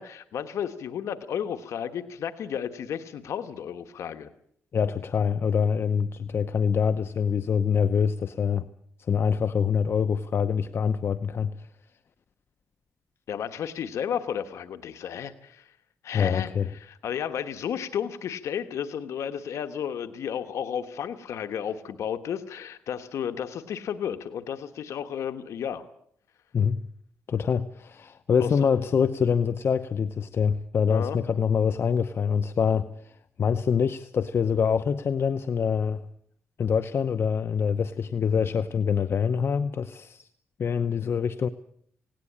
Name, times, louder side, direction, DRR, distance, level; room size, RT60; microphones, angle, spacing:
voice 1, 0.0-4.3 13.3-15.7 16.0-25.9 28.4-28.5 30.9-31.2, left 8 dB, 90° left, 10 dB, 1.2 m, -33 dB
voice 2, 4.7-8.7 9.1-11.7 16.1-16.7 26.5-26.8 27.3-36.0 36.6-40.3 40.6-41.5, left 6 dB, 55° left, 12 dB, 0.7 m, -25 dB
18.5 x 18.0 x 8.6 m, 0.65 s
cardioid pair, 100°, 5 cm